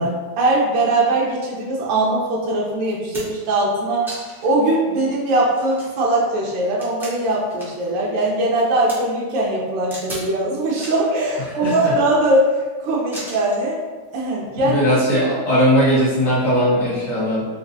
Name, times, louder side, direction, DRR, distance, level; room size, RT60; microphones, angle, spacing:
voice 1, 0.0-4.2 4.4-12.5 12.8-13.8 14.1-14.8, right 2 dB, 90° right, -3 dB, 1.4 m, -20 dB
sound 1, 2.3-2.4 2.8-3.5 4.1-4.5 5.0-5.1 5.5-7.9 8.2-9.0 9.9-10.3 10.7-11.1 11.6-12.3 13.1-13.7 14.7-14.9, right 1 dB, 5° right, 0.3 m, -37 dB
voice 2, 11.6-11.9 14.6-17.5, equal, 60° left, -9 dB, 1.9 m, -18 dB
4.1 x 2.5 x 2.6 m, 1.4 s
omnidirectional pair, 2.0 m